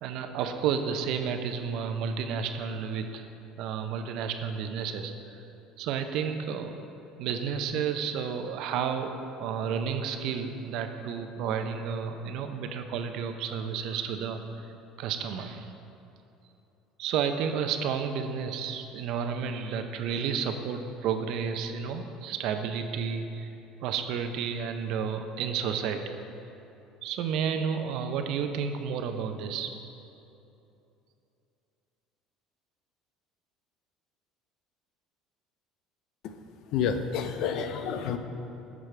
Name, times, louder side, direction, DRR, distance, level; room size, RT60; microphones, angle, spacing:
voice 1, 0.0-3.3 3.6-5.1 5.8-6.8 7.2-14.4 15.0-15.7 17.0-23.5 23.8-26.2 27.0-29.7, right 7 dB, 70° right, 7 dB, 0.6 m, -31 dB
voice 2, 36.7-38.2, left 7 dB, 65° left, 8 dB, 0.6 m, -29 dB
10.5 x 6.2 x 3.3 m, 2.9 s
supercardioid pair, 90°, 0 cm